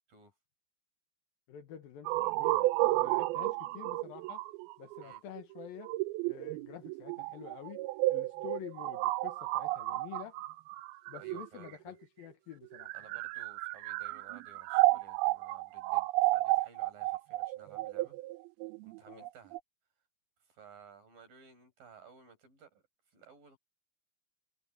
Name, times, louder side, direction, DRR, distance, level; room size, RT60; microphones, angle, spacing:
voice 1, 1.5-4.4 4.8-5.9 6.2-7.8 8.1-10.4 11.1-13.2 19.1-19.3, left 10 dB, 65° left, 2.8 m, -48 dB
sound 1, 2.1-11.9 12.6-19.6, right 19 dB, 85° right, 2.2 m, -32 dB
voice 2, 11.2-12.0 12.9-18.2 18.8-19.6 20.5-22.8 23.1-23.6, right 5 dB, 50° right, 8.1 m, -57 dB
omnidirectional pair, 5.0 m